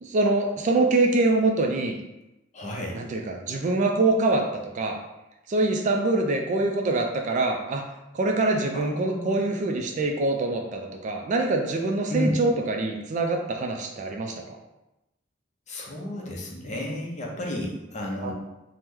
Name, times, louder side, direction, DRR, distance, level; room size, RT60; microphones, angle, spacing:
voice 1, 0.0-2.0 2.9-5.0 5.5-7.8 8.1-14.6 18.2-18.3, right 2 dB, 40° right, 3 dB, 0.3 m, -24 dB
voice 2, 2.5-3.0 8.7-9.4 12.1-12.4 15.7-18.3, left 1 dB, 40° left, -2 dB, 0.6 m, -32 dB
2.9 x 2.0 x 3.5 m, 0.97 s
head